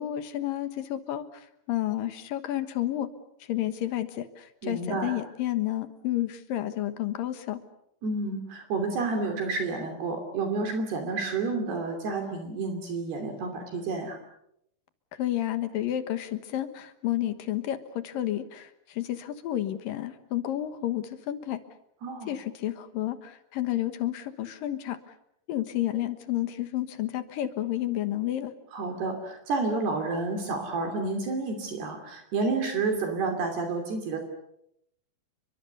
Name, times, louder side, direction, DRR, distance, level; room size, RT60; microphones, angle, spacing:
voice 1, 0.0-3.1 3.4-7.6 15.1-21.6 22.3-25.0 25.5-28.5, left 13 dB, 65° left, 11 dB, 2.5 m, -31 dB
voice 2, 4.6-5.2 8.0-14.2 22.0-22.3 28.7-34.2, right 3 dB, 60° right, 5 dB, 4.7 m, -30 dB
30.0 x 24.0 x 6.8 m, 0.77 s
omnidirectional pair, 5.3 m